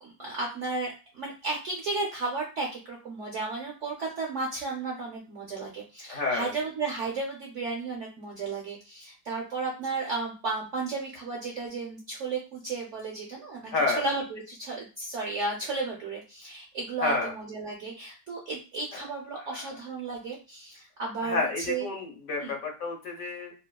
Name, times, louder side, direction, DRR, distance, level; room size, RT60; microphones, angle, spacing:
voice 1, 0.0-21.9 22.4-22.5, right 3 dB, 65° right, -1 dB, 0.7 m, -34 dB
voice 2, 6.1-6.5 13.7-14.0 17.0-17.3 19.3-19.7 21.2-23.5, left 3 dB, 60° left, 1 dB, 1.0 m, -30 dB
3.6 x 2.4 x 2.3 m, 0.33 s
omnidirectional pair, 1.9 m